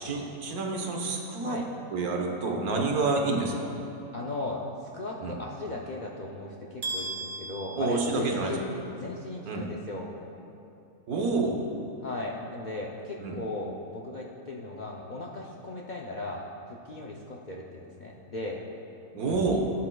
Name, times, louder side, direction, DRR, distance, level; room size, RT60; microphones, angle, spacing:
voice 1, 0.0-1.6 1.9-3.7 5.2-5.4 7.7-8.5 9.4-9.7 11.1-11.6 13.2-13.4 19.1-19.7, right 3 dB, 85° right, 1 dB, 1.5 m, -28 dB
voice 2, 4.1-4.6 4.9-10.1 12.0-18.6, left 2 dB, 60° left, -2 dB, 0.5 m, -37 dB
sound 1, 6.8-8.8, right 2 dB, 55° right, 1.3 m, -37 dB
15.5 x 7.5 x 2.3 m, 2.7 s
omnidirectional pair, 1.5 m